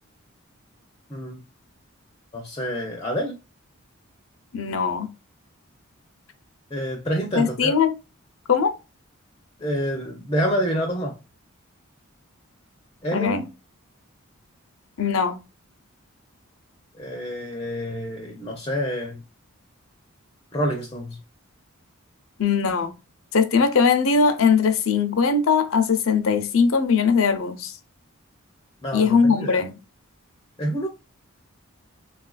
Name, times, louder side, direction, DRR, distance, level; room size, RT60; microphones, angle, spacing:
voice 1, 1.1-1.4 2.3-3.4 6.7-7.8 9.6-11.2 13.0-13.5 17.0-19.2 20.5-21.2 28.8-29.6 30.6-30.9, equal, 20° left, 0.5 m, -27 dB
voice 2, 4.5-5.1 7.3-7.9 8.5-8.7 13.1-13.4 15.0-15.4 22.4-22.9 23.3-27.8 28.9-29.7, left 5 dB, 70° left, 0.6 m, -20 dB
3.5 x 2.4 x 2.2 m
head